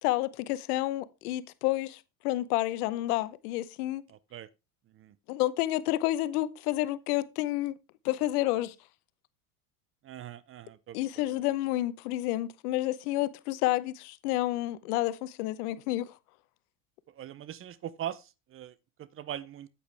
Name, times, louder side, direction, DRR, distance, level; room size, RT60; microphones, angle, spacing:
voice 1, 0.0-4.0 5.3-7.7 8.0-8.7 10.9-16.1, left 16 dB, 70° left, 0.9 m, -30 dB
voice 2, 4.1-4.5 4.9-5.1 10.0-11.2 17.1-19.7, right 11 dB, 30° right, 0.5 m, -41 dB
8.6 x 8.5 x 3.3 m
supercardioid pair, 105°, 46 cm